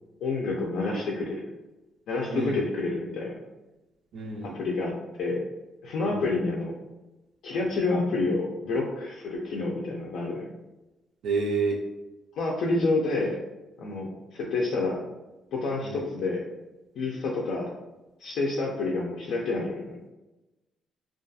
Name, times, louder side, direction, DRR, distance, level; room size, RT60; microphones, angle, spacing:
voice 1, 0.2-1.4 2.1-3.3 4.4-5.4 5.8-6.7 7.4-10.5 12.3-13.4 13.8-15.0 15.5-16.4 17.0-17.7 18.2-20.0, left 3 dB, 75° left, -2 dB, 0.3 m, -28 dB
voice 2, 2.3-2.6 4.1-4.6 6.1-6.2 11.2-11.8 15.8-16.0, right 4 dB, 65° right, 0 dB, 0.3 m, -29 dB
2.3 x 2.3 x 2.6 m, 1.0 s
cardioid pair, 165°, 0 cm